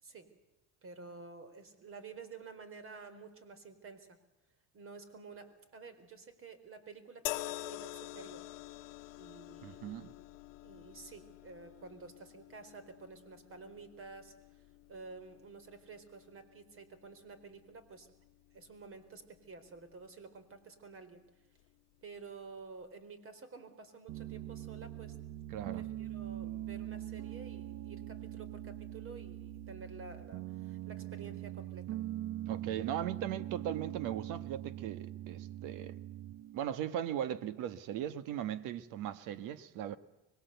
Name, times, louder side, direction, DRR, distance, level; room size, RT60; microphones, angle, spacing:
voice 1, 0.8-4.2 4.7-8.5 9.2-10.2 10.6-18.1 18.5-21.2 22.0-25.2 25.7-32.0, right 4 dB, 40° right, 4.4 m, -51 dB
sound 1, 7.3-20.6 21.5-21.7, left 18 dB, 85° left, 1.0 m, -48 dB
voice 2, 9.6-10.1 25.5-25.9 32.5-35.9 36.5-40.0, right 10 dB, 75° right, 1.5 m, -38 dB
Piano, 24.1-36.6, right 13 dB, 60° right, 0.9 m, -42 dB
25.0 x 21.5 x 8.2 m
cardioid pair, 115°, 32 cm